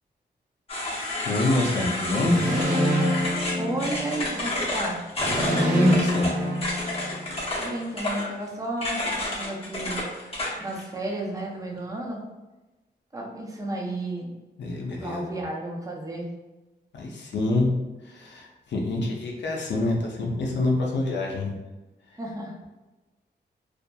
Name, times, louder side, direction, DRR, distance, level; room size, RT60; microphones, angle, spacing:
sound 1, 0.7-10.8, left 1 dB, 30° left, 0.7 m, -30 dB
voice 1, 1.3-2.4 5.3-6.3 14.6-15.2 16.9-17.7 18.0-21.6, left 2 dB, 80° left, -1 dB, 0.5 m, -26 dB
sound 2, 2.2-4.4 5.2-7.4, equal, 50° right, 0.7 m, -26 dB
voice 2, 3.6-5.0 7.6-10.0 10.6-12.2 13.1-14.4 15.0-16.3 22.2-22.6, right 1 dB, 20° right, -1 dB, 0.4 m, -32 dB
2.6 x 2.4 x 2.2 m, 1.1 s
wide cardioid pair, 150°, 18 cm